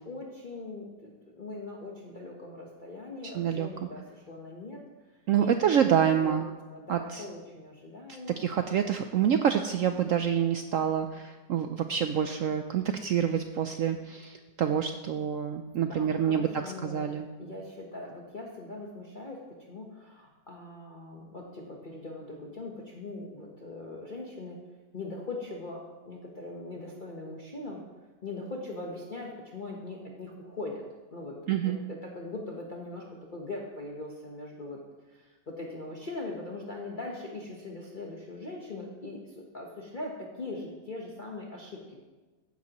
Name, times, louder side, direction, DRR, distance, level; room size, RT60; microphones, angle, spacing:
voice 1, 0.0-5.8 6.1-6.3 6.7-8.4 15.8-17.0 17.4-24.6 24.9-27.8 28.2-30.8 31.1-31.4 31.6-34.8 35.1-42.0, left 2 dB, 35° left, -2 dB, 1.1 m, -41 dB
voice 2, 3.2-3.7 5.3-6.5 6.9-7.2 8.4-17.3 31.5-31.8, right 8 dB, 70° right, 7 dB, 0.7 m, -27 dB
14.5 x 10.0 x 3.0 m, 1.3 s
omnidirectional pair, 1.8 m